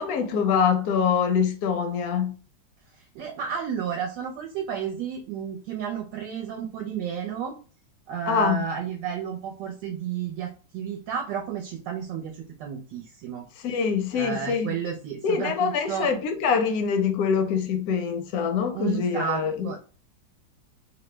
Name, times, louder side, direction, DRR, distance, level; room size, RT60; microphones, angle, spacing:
voice 1, 0.0-2.4 8.3-8.6 13.6-14.7 15.2-19.8, left 6 dB, 70° left, 0.9 m, -24 dB
voice 2, 3.0-7.6 8.1-13.4 14.1-16.1 18.7-19.8, right 8 dB, 75° right, 1.2 m, -32 dB
3.2 x 2.0 x 3.2 m
omnidirectional pair, 2.0 m